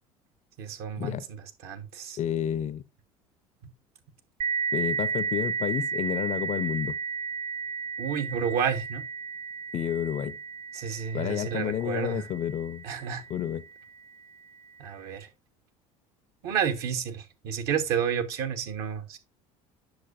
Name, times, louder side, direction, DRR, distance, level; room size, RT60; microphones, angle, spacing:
voice 1, 0.6-2.2 8.0-9.0 10.7-12.2 12.8-13.2 14.8-15.3 16.4-19.2, right 7 dB, 60° right, 1.1 m, -31 dB
voice 2, 2.2-2.8 4.7-7.0 9.7-10.4 11.1-12.8 13.3-13.6, left 10 dB, 45° left, 0.6 m, -30 dB
sound 1, 4.4-13.6, right 5 dB, 40° right, 0.4 m, -33 dB
7.8 x 6.2 x 2.4 m
hypercardioid pair, 65°, 17 cm